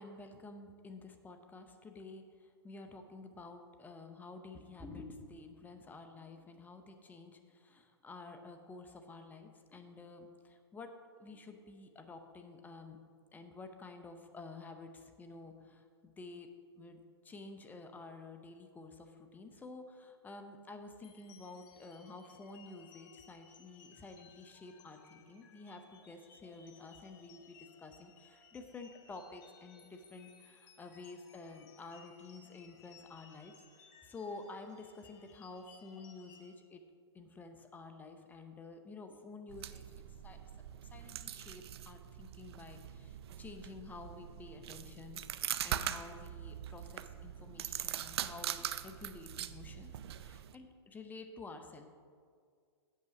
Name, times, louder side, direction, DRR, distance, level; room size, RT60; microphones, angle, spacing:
voice 1, 0.0-10.9 11.2-13.0 13.3-16.5 16.8-33.5 34.0-36.8 37.1-39.8 40.2-40.4 40.9-51.9, left 3 dB, 10° left, 6 dB, 0.7 m, -51 dB
sound 1, 21.0-36.6, left 6 dB, 45° left, 1.2 m, -62 dB
sound 2, 39.5-50.6, right 10 dB, 65° right, 0.5 m, -42 dB
8.5 x 6.1 x 5.9 m, 2.1 s
hypercardioid pair, 125°, 14 cm